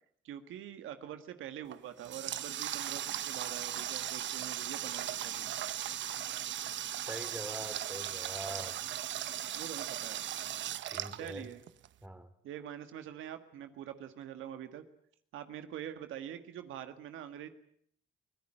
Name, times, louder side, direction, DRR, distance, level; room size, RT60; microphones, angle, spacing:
voice 1, 0.2-5.6 9.5-10.2 11.1-11.6 12.4-14.8 15.3-17.5, right 10 dB, 85° right, 9 dB, 1.7 m, -45 dB
Water tap faucet, 1.7-11.9, right 11 dB, 70° right, 0.9 m, -38 dB
voice 2, 7.1-8.8 10.9-11.5 12.0-12.3, right 1 dB, 5° right, 10 dB, 2.7 m, -43 dB
24.0 x 17.0 x 8.9 m, 0.65 s
cardioid pair, 90°, 20 cm